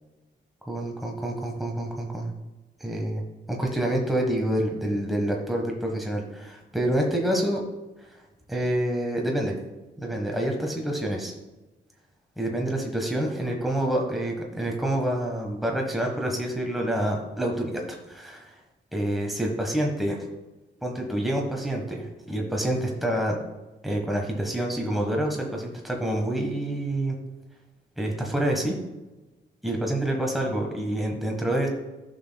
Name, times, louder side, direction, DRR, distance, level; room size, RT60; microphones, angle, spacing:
voice 1, 0.7-2.3 2.8-3.2 3.5-7.6 8.0-8.1 8.5-9.6 10.0-11.3 12.4-18.6 18.9-20.2 20.8-23.4 23.8-27.1 28.0-28.8 29.6-31.7, right 1 dB, ahead, 0 dB, 1.4 m, -27 dB
10.0 x 6.1 x 2.3 m, 1.1 s
cardioid pair, 65°, 19 cm